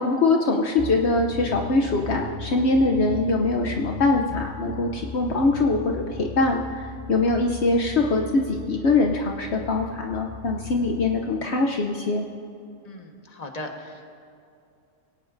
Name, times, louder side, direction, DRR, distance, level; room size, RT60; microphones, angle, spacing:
voice 1, 0.0-12.2, left 3 dB, 65° left, 2 dB, 1.1 m, -23 dB
sound 1, 0.8-11.1, left 2 dB, 35° right, 3.4 m, -38 dB
voice 2, 12.8-14.0, left 1 dB, 35° left, 2 dB, 1.4 m, -38 dB
23.0 x 17.5 x 2.6 m, 2.5 s
omnidirectional pair, 1.3 m